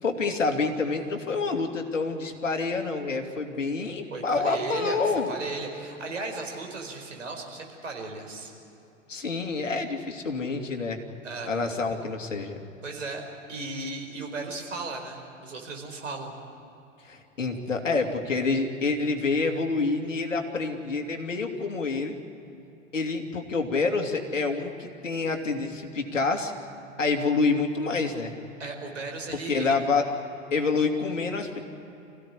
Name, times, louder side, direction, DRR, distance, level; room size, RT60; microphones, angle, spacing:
voice 1, 0.0-5.3 9.1-11.0 11.5-12.6 17.1-22.2 22.9-26.5 27.0-28.3 29.5-30.1 30.5-31.6, left 4 dB, 75° left, 4 dB, 2.7 m, -27 dB
voice 2, 4.1-5.0 5.3-8.5 11.2-11.8 12.8-13.2 13.5-16.3 28.6-29.7, right 3 dB, 75° right, 2 dB, 4.8 m, -36 dB
27.5 x 16.5 x 9.9 m, 2.9 s
figure-of-eight pair, 95°, 38 cm